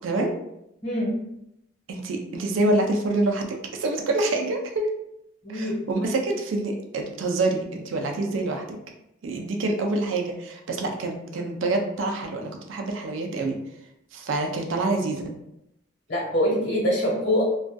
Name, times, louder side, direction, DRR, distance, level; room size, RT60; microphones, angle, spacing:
voice 1, 0.0-0.3 1.9-4.9 5.5-8.8 9.2-13.6 14.1-15.3, right 2 dB, 80° right, 3 dB, 0.4 m, -26 dB
voice 2, 0.8-1.2 5.4-5.8 16.1-17.4, equal, 60° left, -4 dB, 1.2 m, -24 dB
2.5 x 2.3 x 2.3 m, 0.80 s
head